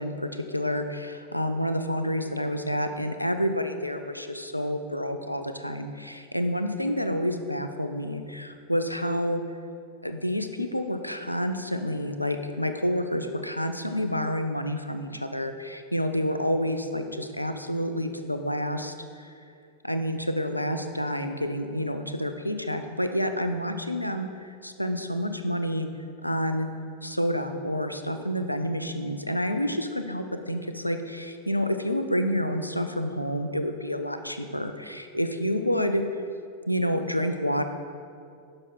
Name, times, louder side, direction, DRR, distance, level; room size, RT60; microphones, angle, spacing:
voice 1, 0.0-9.4 10.0-19.3 19.8-25.9 26.2-26.7 27.0-36.0 36.7-37.7, equal, 90° left, 7 dB, 0.4 m, -29 dB
6.4 x 5.9 x 4.2 m, 2.4 s
figure-of-eight pair, 90°, 0 cm